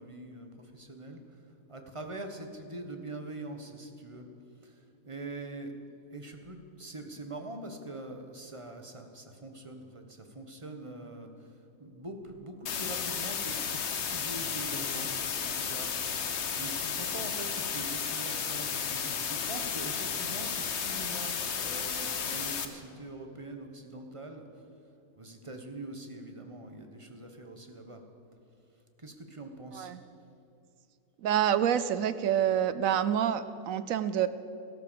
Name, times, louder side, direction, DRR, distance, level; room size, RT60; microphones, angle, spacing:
voice 1, 0.0-1.4 1.7-4.3 4.6-5.7 6.1-24.5 25.1-28.0 29.0-29.9, right 2 dB, 20° right, 5 dB, 1.2 m, -43 dB
sound 1, 12.7-22.7, left 7 dB, 50° left, 1.1 m, -33 dB
voice 2, 31.2-34.3, right 9 dB, 65° right, 13 dB, 1.0 m, -27 dB
14.0 x 12.5 x 6.9 m, 2.6 s
omnidirectional pair, 1.6 m